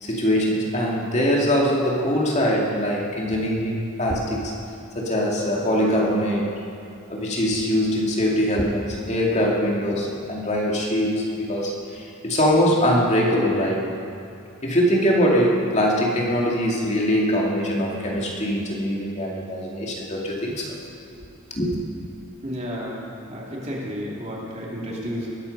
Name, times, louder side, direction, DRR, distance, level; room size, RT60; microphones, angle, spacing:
voice 1, 0.0-4.5 5.0-6.5 7.1-13.8 14.6-20.7 21.5-21.8, equal, 35° left, -2 dB, 2.2 m, -22 dB
voice 2, 22.4-23.0 23.3-25.3, equal, 30° right, -4 dB, 2.8 m, -31 dB
20.5 x 8.7 x 5.4 m, 2.7 s
head